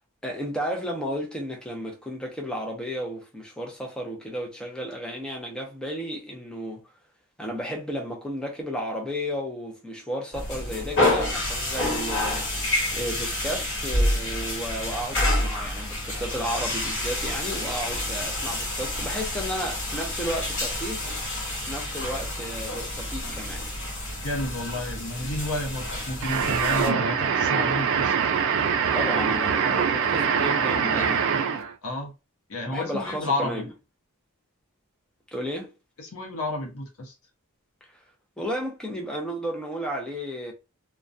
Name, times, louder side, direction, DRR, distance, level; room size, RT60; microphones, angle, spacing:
voice 1, 0.2-6.8 7.4-12.5 12.9-21.0 21.6-23.7 26.7-27.1 28.9-31.4 32.7-33.7 35.3-35.7 38.4-40.5, equal, 5° left, 0.5 m, -33 dB
sound 1, 10.3-26.9, left 1 dB, 60° left, 1.1 m, -28 dB
voice 2, 24.2-28.1 29.7-29.8 30.9-31.2 31.8-32.1 32.5-33.6 36.0-37.1, left 1 dB, 80° left, 0.8 m, -31 dB
sound 2, 26.2-31.7, right 6 dB, 60° right, 0.3 m, -24 dB
2.2 x 2.2 x 2.5 m
head